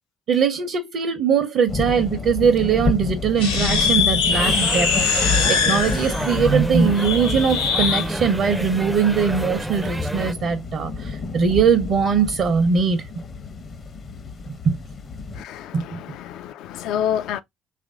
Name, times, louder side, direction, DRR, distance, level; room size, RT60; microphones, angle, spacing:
voice 1, 0.3-4.9 5.2-13.1 14.6-14.8 15.7-16.0, right 6 dB, 55° right, 0.6 m, -21 dB
sound 1, 1.7-15.4, left 4 dB, 40° left, 0.7 m, -30 dB
sound 2, 3.4-8.1, left 4 dB, 85° left, 1.0 m, -21 dB
sound 3, 4.3-10.3, right 1 dB, 10° right, 0.4 m, -30 dB
voice 2, 15.3-17.4, left 10 dB, 65° left, 0.3 m, -28 dB
3.1 x 2.5 x 3.8 m
hypercardioid pair, 55°, 0 cm